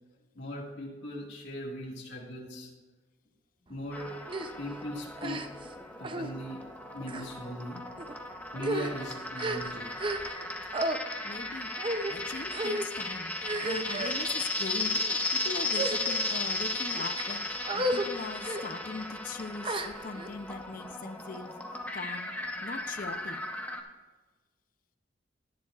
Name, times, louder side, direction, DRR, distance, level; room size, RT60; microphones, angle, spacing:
voice 1, 0.3-2.7 3.7-4.2 4.6-5.5 6.0-6.7 6.9-7.9 8.5-10.0, left 1 dB, 70° left, -3 dB, 1.9 m, -39 dB
sound 1, 3.9-23.8, left 2 dB, 10° left, 0.7 m, -36 dB
sound 2, 4.3-4.5 5.2-5.7 6.0-6.3 7.0-7.3 8.0-8.1 8.5-10.5 10.7-11.0 11.8-12.1 12.5-12.9 13.4-14.2 14.9-15.2 15.7-16.4 17.0-17.2 17.7-18.1 18.4-18.6 19.6-20.3, right 1 dB, 30° right, 0.5 m, -33 dB
voice 2, 11.2-11.7 12.1-13.3 13.6-15.0 15.3-21.5 21.9-22.3 22.6-23.4, left 4 dB, 50° left, 10 dB, 0.6 m, -40 dB
21.0 x 7.2 x 2.4 m, 1.3 s
head